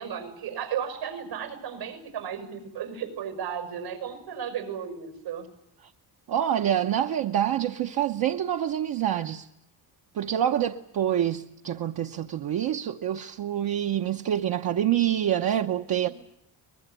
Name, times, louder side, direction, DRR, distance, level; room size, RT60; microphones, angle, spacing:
voice 1, 0.0-5.5 16.0-16.1, right 8 dB, 90° right, 6.0 m, -34 dB
voice 2, 6.3-9.5 10.2-16.1, right 10 dB, 60° right, 0.9 m, -26 dB
24.0 x 21.0 x 9.1 m
cardioid pair, 180°, 41 cm